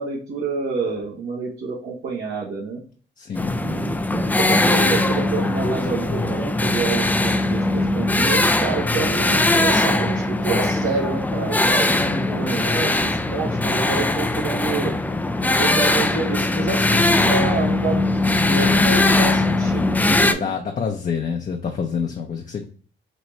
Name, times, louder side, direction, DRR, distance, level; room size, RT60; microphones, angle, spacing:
voice 1, 0.0-2.8 3.5-15.0 15.5-20.5, right 4 dB, 70° right, -6 dB, 1.2 m, -28 dB
voice 2, 3.2-3.6 12.0-12.3 20.3-22.6, left 6 dB, 40° left, 2 dB, 0.7 m, -27 dB
sound 1, 3.3-20.3, left 2 dB, 10° left, 0.4 m, -20 dB
4.1 x 2.8 x 3.2 m, 0.42 s
cardioid pair, 90°, 20 cm